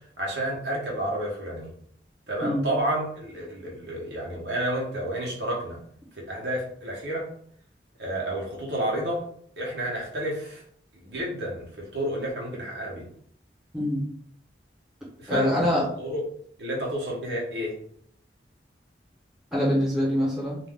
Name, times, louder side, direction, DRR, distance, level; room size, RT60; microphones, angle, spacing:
voice 1, 0.2-1.7 2.3-5.8 6.1-7.3 8.0-9.2 9.6-10.6 10.9-13.1 15.2-15.7 16.0-16.2 16.6-17.7, right 1 dB, 80° right, -3 dB, 0.9 m, -30 dB
voice 2, 15.3-15.8 19.5-20.6, equal, ahead, -6 dB, 1.0 m, -24 dB
2.5 x 2.3 x 3.5 m, 0.63 s
head